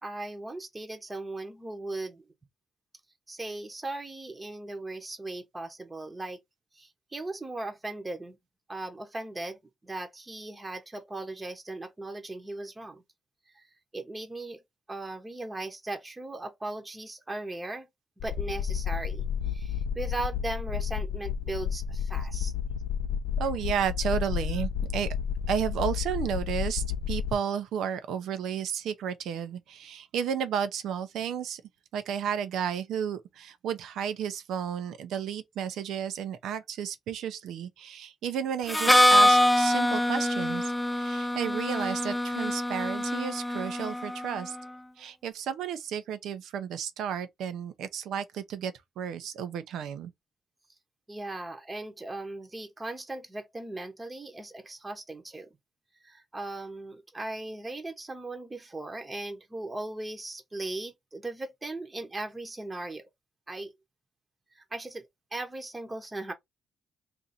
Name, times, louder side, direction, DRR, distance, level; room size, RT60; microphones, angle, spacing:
voice 1, 0.0-2.3 3.3-6.4 6.7-8.4 8.7-13.0 13.5-13.7 13.9-14.6 14.9-17.9 18.2-22.5 51.1-55.5 56.0-63.0 63.5-63.7 64.5-66.3, right 2 dB, 20° right, 0.8 m, -38 dB
sound 1, 18.2-27.3, left 7 dB, 70° left, 0.4 m, -31 dB
voice 2, 23.4-25.1 25.5-31.6 31.9-44.6 45.0-50.1, right 8 dB, 80° right, 0.6 m, -32 dB
Harmonica, 38.7-44.4, left 1 dB, 5° left, 0.4 m, -24 dB
2.6 x 2.6 x 4.1 m
cardioid pair, 90°, 0 cm